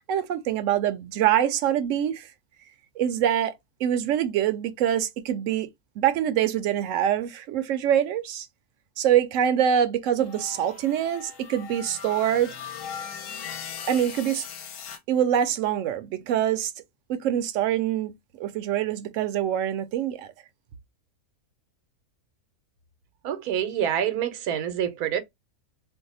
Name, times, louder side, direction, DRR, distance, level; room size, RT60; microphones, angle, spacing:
voice 1, 0.1-2.3 3.0-3.6 3.8-5.7 6.0-8.5 9.0-12.5 13.9-14.5 15.1-16.7 17.1-18.1 18.4-20.3, right 10 dB, 70° right, 0.9 m, -24 dB
sound 1, 10.2-15.0, left 7 dB, 70° left, 0.9 m, -39 dB
voice 2, 23.2-25.2, right 9 dB, 90° right, 1.2 m, -27 dB
2.6 x 2.1 x 4.0 m
omnidirectional pair, 1.5 m